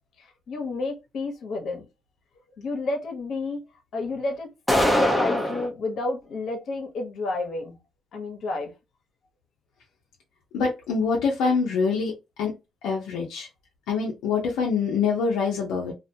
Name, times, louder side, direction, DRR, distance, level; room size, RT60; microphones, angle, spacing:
voice 1, 0.2-1.8 2.6-3.6 3.9-7.8 8.1-8.7, left 3 dB, 65° left, 0.9 m, -31 dB
sound 1, 4.7-5.7, equal, 5° left, 0.7 m, -22 dB
voice 2, 10.5-12.1 12.4-12.5 12.8-13.5 13.9-15.9, left 5 dB, 90° left, 0.6 m, -25 dB
2.4 x 2.2 x 2.7 m
cardioid pair, 90°, 0 cm